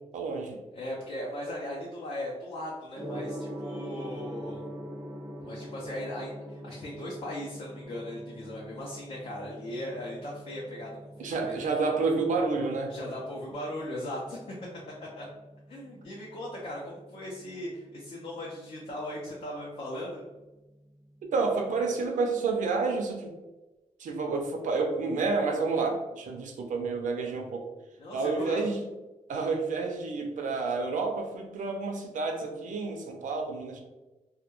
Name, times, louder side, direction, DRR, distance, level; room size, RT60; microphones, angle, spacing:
voice 1, 0.1-0.6 11.2-12.9 21.2-23.4 24.0-27.7 28.1-28.8 29.3-33.8, right 4 dB, 90° right, 3 dB, 0.4 m, -29 dB
voice 2, 0.7-4.6 5.4-11.7 12.9-14.4 15.2-15.3 15.7-20.2 28.0-28.6, left 1 dB, 50° left, -4 dB, 0.5 m, -38 dB
Gong, 2.9-22.0, equal, 25° right, 0.4 m, -44 dB
2.2 x 2.1 x 2.9 m, 1.1 s
wide cardioid pair, 175°, 13 cm